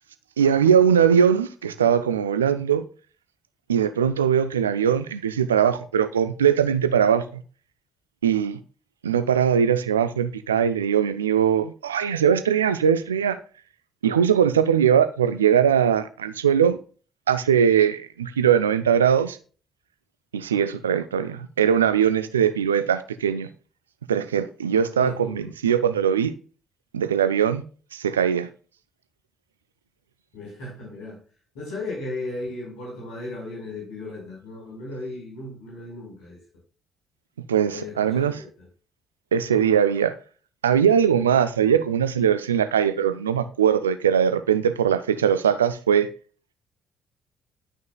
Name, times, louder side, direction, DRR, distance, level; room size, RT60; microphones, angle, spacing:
voice 1, 0.4-2.8 3.7-7.4 8.2-8.6 9.0-13.4 14.0-16.8 17.3-19.4 20.3-23.5 24.1-26.3 26.9-27.6 27.9-28.5 37.5-38.4 39.3-40.2 40.6-46.1, right 8 dB, 80° right, 0.5 m, -21 dB
voice 2, 25.0-25.4 30.3-31.2 31.5-36.4 37.7-38.7 41.1-41.2, left 2 dB, 65° left, 4.5 m, -36 dB
11.0 x 6.3 x 2.3 m
figure-of-eight pair, 45°, 0 cm